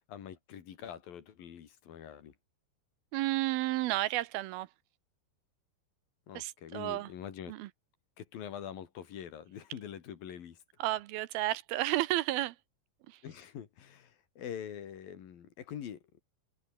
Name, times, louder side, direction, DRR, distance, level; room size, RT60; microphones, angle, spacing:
voice 1, 0.1-2.3 6.3-7.6 8.2-10.6 13.2-16.2, left 9 dB, 65° left, 3.9 m, -44 dB
voice 2, 3.1-4.7 6.4-7.1 7.5-7.7 10.8-12.6 13.1-13.2, right 16 dB, 75° right, 2.6 m, -32 dB
omnidirectional pair, 4.5 m